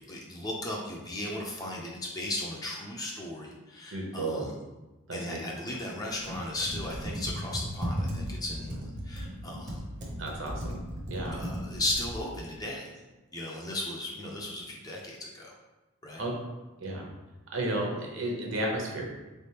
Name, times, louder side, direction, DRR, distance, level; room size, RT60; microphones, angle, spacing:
voice 1, 0.0-4.5 5.1-9.8 11.3-12.9 13.3-15.5 16.0-16.2, left 1 dB, 15° left, -2 dB, 0.5 m, -36 dB
voice 2, 3.9-4.5 5.1-5.4 10.2-10.8 11.1-11.4 16.2-16.3 16.8-17.0 17.5-19.0, right 1 dB, 60° right, -1 dB, 0.9 m, -32 dB
Computer keyboard, 6.2-12.3, equal, 35° right, 0.7 m, -36 dB
3.8 x 3.4 x 2.8 m, 1.1 s
head